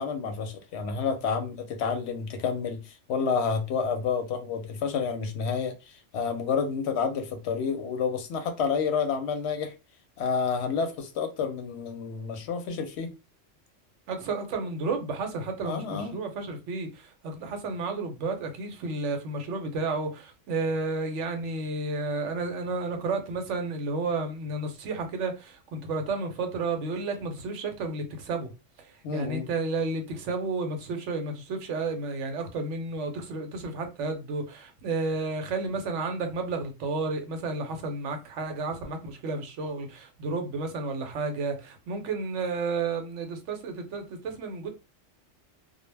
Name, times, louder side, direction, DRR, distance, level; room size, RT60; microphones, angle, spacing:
voice 1, 0.0-9.7 10.2-13.1 15.6-16.2 29.0-29.5, left 5 dB, 70° left, 0.8 m, -29 dB
voice 2, 14.1-28.5 28.8-44.7, right 3 dB, 80° right, 1.0 m, -32 dB
2.2 x 2.0 x 3.2 m
omnidirectional pair, 1.3 m